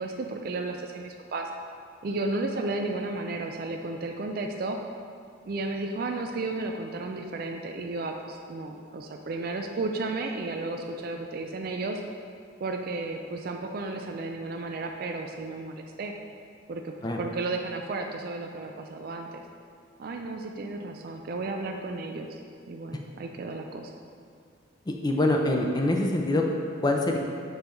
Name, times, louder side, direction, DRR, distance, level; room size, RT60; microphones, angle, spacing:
voice 1, 0.0-1.5 2.0-4.8 5.5-12.0 12.6-16.1 16.7-19.4 20.0-22.4 22.7-23.9, right 3 dB, 45° right, 3 dB, 0.3 m, -33 dB
voice 2, 24.9-26.4 26.8-27.2, left 1 dB, 20° left, 1 dB, 0.4 m, -24 dB
5.4 x 4.4 x 5.2 m, 2.3 s
head